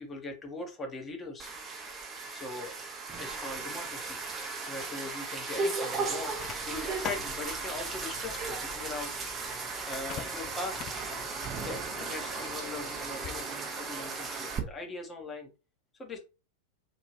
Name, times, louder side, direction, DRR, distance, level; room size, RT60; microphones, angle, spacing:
voice 1, 0.0-1.5 2.3-2.8 3.2-4.2 4.7-10.9 11.6-15.5 16.0-16.2, left 3 dB, 20° left, 3 dB, 0.9 m, -41 dB
sound 1, 1.4-14.6, right 4 dB, 20° right, 0.7 m, -36 dB
sound 2, 5.9-13.4, left 9 dB, 35° left, 0.4 m, -46 dB
2.6 x 2.6 x 3.1 m, 0.31 s
figure-of-eight pair, 90°, 0 cm